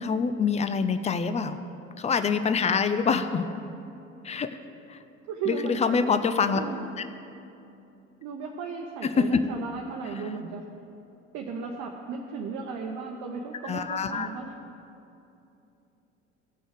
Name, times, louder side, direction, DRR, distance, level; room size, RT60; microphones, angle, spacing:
voice 1, 0.0-1.6 2.0-3.5 4.2-4.6 4.9-5.0 5.5-6.6 9.2-9.3 13.6-14.3, left 5 dB, 20° left, 10 dB, 0.4 m, -25 dB
voice 2, 5.3-6.0 6.5-6.8 8.2-10.6 11.3-14.5, right 5 dB, 45° right, 1 dB, 0.9 m, -35 dB
15.5 x 6.2 x 5.1 m, 2.8 s
figure-of-eight pair, 60°, 39 cm